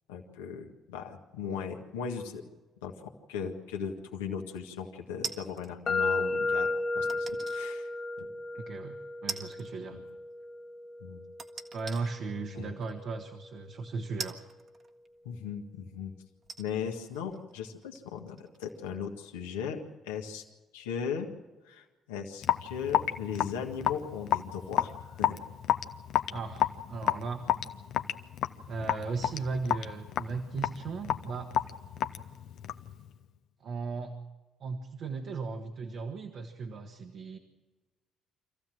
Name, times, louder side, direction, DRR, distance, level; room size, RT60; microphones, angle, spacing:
voice 1, 0.1-2.4 2.8-6.7 6.9-7.9 8.2-8.3 9.9-10.0 11.0-11.2 12.5-12.7 15.2-16.1 16.6-20.4 20.7-21.3 21.7-25.4, left 7 dB, 85° left, 3 dB, 1.8 m, -38 dB
sound 1, 5.2-5.8 7.1-7.6 8.2-8.3 9.3-9.7 10.0-10.1 11.4-12.0 12.9-13.0 14.2-15.3 15.9-16.0 16.4-18.9 19.2-19.3, right 5 dB, 45° right, 1.6 m, -41 dB
sound 2, 5.9-13.7, left 3 dB, 40° left, 2.1 m, -34 dB
voice 2, 8.5-10.0 11.7-14.4 26.3-27.4 28.7-31.6 33.6-34.2 34.6-37.4, right 4 dB, 60° right, 4 dB, 1.5 m, -37 dB
Raindrop / Drip, 22.4-32.9, left 11 dB, 65° left, 0.8 m, -30 dB
26.0 x 15.0 x 7.8 m, 1.2 s
hypercardioid pair, 50°, 0 cm